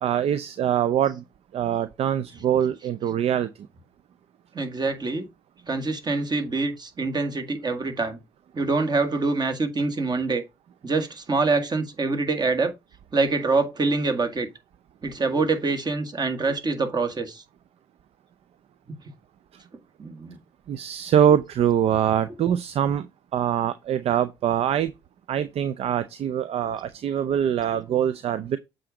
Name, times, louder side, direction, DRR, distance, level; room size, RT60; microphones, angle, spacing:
voice 1, 0.0-1.2 1.5-3.5 20.7-23.1 23.3-24.9 25.3-28.6, right 9 dB, 55° right, 0.6 m, -23 dB
voice 2, 4.5-5.3 5.7-8.2 8.5-10.4 10.8-12.7 13.1-14.5 15.0-17.4 20.0-20.4 21.3-21.4 27.7-27.8, right 3 dB, 35° right, 1.9 m, -25 dB
7.6 x 3.8 x 5.0 m
hypercardioid pair, 50°, 12 cm